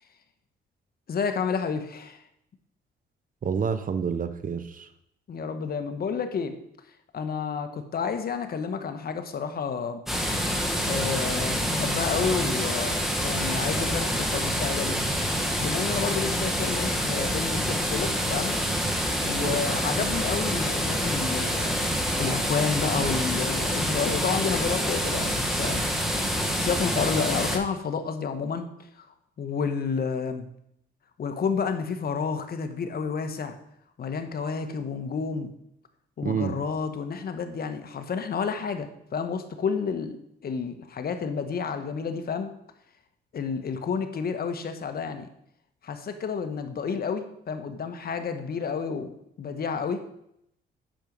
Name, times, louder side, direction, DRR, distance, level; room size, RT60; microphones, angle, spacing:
voice 1, 1.1-2.2 5.3-6.5 7.1-10.0 10.8-15.0 15.6-18.6 19.2-21.8 22.2-25.8 26.6-28.7 29.0-29.1 29.4-30.5 31.2-33.6 34.0-35.5 36.2-40.2 40.4-42.6 43.3-45.3 45.8-49.1 49.4-50.0, left 5 dB, 50° left, 8 dB, 1.2 m, -30 dB
voice 2, 3.4-4.9 19.4-19.6 36.2-36.6, right 6 dB, 45° right, 12 dB, 0.8 m, -28 dB
sound 1, 10.1-27.6, equal, ahead, 1.6 m, -27 dB
9.0 x 6.3 x 5.4 m, 0.75 s
cardioid pair, 90°, 20 cm